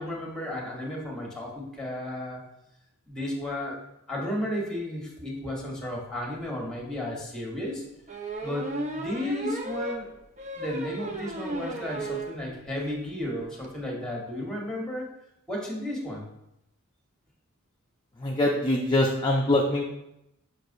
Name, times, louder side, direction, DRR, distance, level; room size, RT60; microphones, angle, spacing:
voice 1, 0.0-2.4 3.1-3.8 4.1-7.8 8.4-10.1 10.5-15.1 15.5-16.3, left 1 dB, 5° left, -1 dB, 1.3 m, -33 dB
sound 1, 6.3-6.4 6.8-6.9 8.1-12.4 12.8-12.9 13.1-13.2 13.4-13.7, right 2 dB, 35° right, 0.5 m, -34 dB
voice 2, 18.2-19.8, left 1 dB, 20° left, -1 dB, 0.5 m, -23 dB
6.4 x 5.8 x 2.6 m, 0.85 s
head